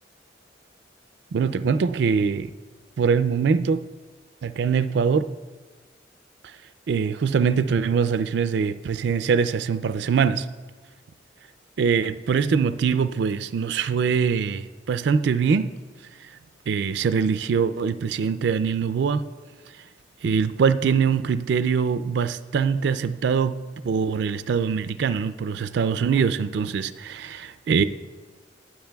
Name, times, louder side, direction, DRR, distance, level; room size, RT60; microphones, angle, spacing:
voice 1, 1.3-2.5 3.0-3.9 4.4-5.3 6.9-10.5 11.8-15.7 16.7-19.3 20.2-27.8, right 6 dB, 65° right, 0.3 m, -23 dB
20.5 x 7.2 x 2.3 m
head